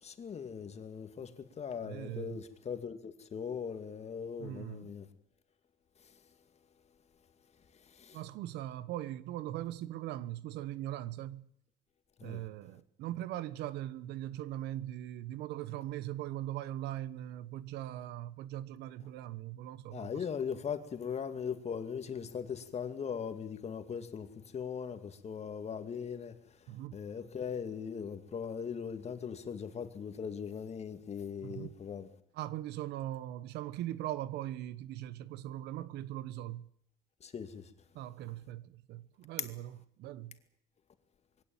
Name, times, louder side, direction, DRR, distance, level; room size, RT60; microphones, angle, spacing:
voice 1, 0.0-5.1 8.0-8.2 12.2-12.4 19.9-24.3 24.5-26.3 26.9-32.1 37.2-37.7 39.4-39.5, left 7 dB, 40° left, 2.3 m, -39 dB
voice 2, 1.8-2.4 4.4-4.9 8.1-11.5 12.2-20.3 26.7-27.0 31.4-31.7 32.3-36.7 37.9-40.4, right 13 dB, 85° right, 1.1 m, -40 dB
22.5 x 17.0 x 8.9 m
cardioid pair, 110°, 17 cm